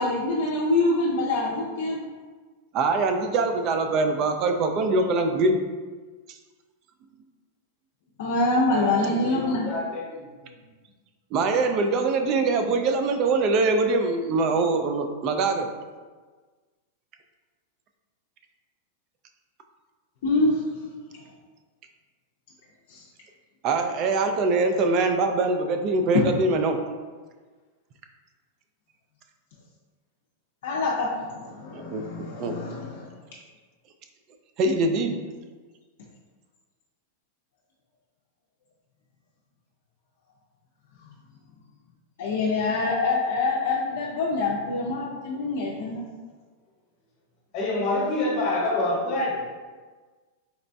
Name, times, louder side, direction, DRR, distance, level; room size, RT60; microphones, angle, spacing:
voice 1, 0.0-2.0 8.2-9.7 20.2-20.7 22.9-23.1 30.6-33.1 42.2-46.0, left 2 dB, 70° left, -4 dB, 0.4 m, -25 dB
voice 2, 2.7-5.6 11.3-15.7 23.6-26.8 31.7-32.0 32.4-32.5 34.6-35.1, right 3 dB, 40° right, 5 dB, 0.3 m, -23 dB
voice 3, 8.7-10.5 47.5-49.4, left 2 dB, 45° left, -3 dB, 1.0 m, -27 dB
4.0 x 2.2 x 2.5 m, 1.4 s
supercardioid pair, 145°, 0 cm